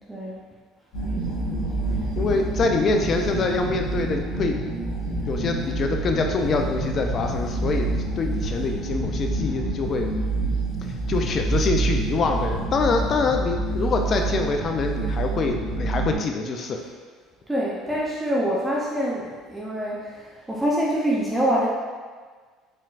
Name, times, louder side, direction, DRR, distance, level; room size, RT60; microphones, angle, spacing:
voice 1, 0.1-0.4 17.5-21.7, equal, 10° right, -5 dB, 0.7 m, -25 dB
sound 1, 0.9-16.2, right 2 dB, 65° left, 1.5 m, -27 dB
voice 2, 2.2-4.6 5.3-10.1 11.1-16.8, left 3 dB, 45° left, 4 dB, 0.5 m, -25 dB
4.3 x 3.7 x 2.5 m, 1.5 s
hypercardioid pair, 70°, 0 cm